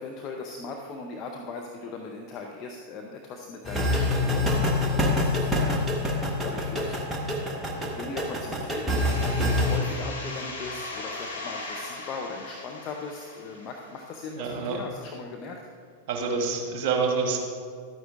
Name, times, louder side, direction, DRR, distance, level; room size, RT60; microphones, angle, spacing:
voice 1, 0.0-7.0 7.3-15.6, left 4 dB, 35° left, 2 dB, 0.7 m, -39 dB
sound 1, 3.6-9.8, left 1 dB, 10° right, 1.3 m, -26 dB
sound 2, 8.9-14.4, left 2 dB, 70° left, 1.5 m, -39 dB
voice 2, 14.4-14.8 16.1-17.4, right 5 dB, 45° right, 2 dB, 1.3 m, -28 dB
12.5 x 9.4 x 2.5 m, 2.2 s
figure-of-eight pair, 90°, 0 cm